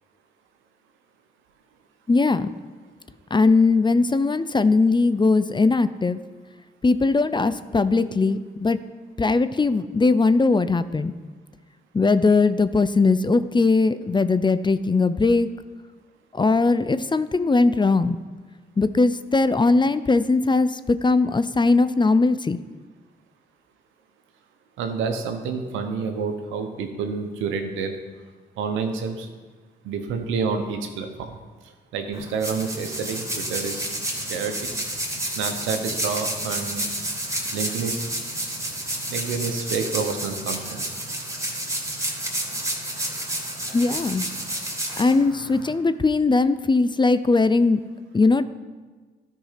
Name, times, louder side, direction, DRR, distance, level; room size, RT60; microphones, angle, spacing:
voice 1, 2.1-2.5 3.3-6.2 6.8-8.8 9.2-11.1 11.9-15.5 16.4-18.2 18.8-22.6 43.7-44.2 45.0-47.8 48.1-48.4, left 3 dB, 25° left, 13 dB, 0.5 m, -20 dB
voice 2, 24.8-27.9 28.6-29.3 29.8-31.4 31.9-33.9 34.3-34.7 35.3-36.8 37.5-38.0 39.1-40.9, right 5 dB, 90° right, 6 dB, 1.0 m, -28 dB
sound 1, 32.1-45.7, right 1 dB, 15° right, 3.0 m, -30 dB
13.0 x 4.7 x 5.8 m, 1.4 s
supercardioid pair, 50°, 19 cm